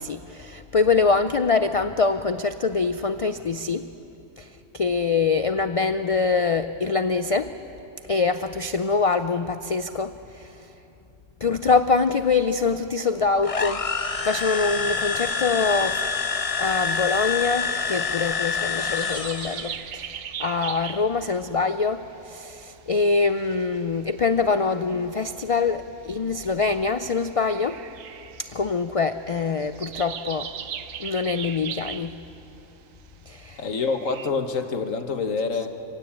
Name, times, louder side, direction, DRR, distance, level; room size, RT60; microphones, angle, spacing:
voice 1, 0.0-3.9 4.4-4.5 4.7-7.6 8.1-10.5 11.4-13.8 14.2-16.0 16.6-27.8 28.4-30.5 31.0-32.1 33.3-33.6, left 4 dB, 60° left, 10 dB, 0.3 m, -24 dB
sound 1, 13.4-19.8, left 5 dB, 35° left, 0.7 m, -27 dB
sound 2, 18.7-21.2 22.7-22.8 23.1-24.0 26.0-26.1 27.4-28.9 29.5-32.3 33.2-33.4 33.8-34.3, right 8 dB, 80° right, 1.2 m, -38 dB
voice 2, 33.6-35.7, left 4 dB, 80° left, 7 dB, 1.7 m, -26 dB
25.5 x 17.0 x 8.8 m, 2.9 s
omnidirectional pair, 1.4 m